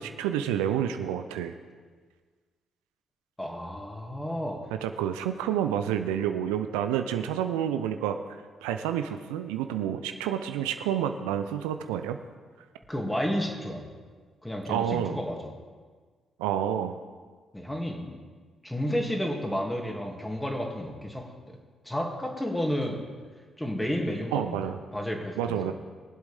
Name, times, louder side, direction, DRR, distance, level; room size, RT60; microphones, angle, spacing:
voice 1, 0.0-1.5 4.8-12.2 14.7-15.2 16.4-17.0 24.3-24.8 25.4-25.7, right 9 dB, 80° right, 8 dB, 0.5 m, -29 dB
voice 2, 3.4-4.6 12.9-13.8 14.4-15.4 17.5-18.2 18.6-21.6 21.8-23.0 23.6-24.6 24.9-25.7, equal, 10° left, 1 dB, 2.4 m, -31 dB
22.5 x 8.0 x 3.5 m, 1.5 s
hypercardioid pair, 45°, 0 cm